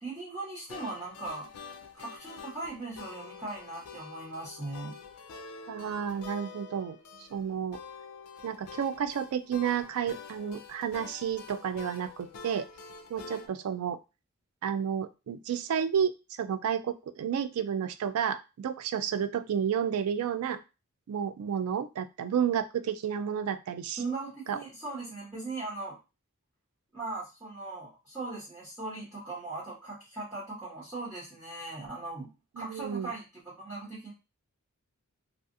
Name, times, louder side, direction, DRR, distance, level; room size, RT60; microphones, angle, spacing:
voice 1, 0.0-1.5 1.9-5.0 24.0-26.0 26.9-32.3 32.5-34.1, right 3 dB, 10° right, -10 dB, 1.1 m, -39 dB
sound 1, 0.7-13.5, left 5 dB, 80° left, 0.4 m, -47 dB
voice 2, 5.7-7.0 7.3-7.8 8.4-12.7 13.1-14.0 14.6-16.1 16.4-20.6 21.1-24.0 24.5-24.6 32.6-33.1, right 8 dB, 80° right, 11 dB, 0.3 m, -31 dB
2.4 x 2.4 x 2.6 m, 0.28 s
head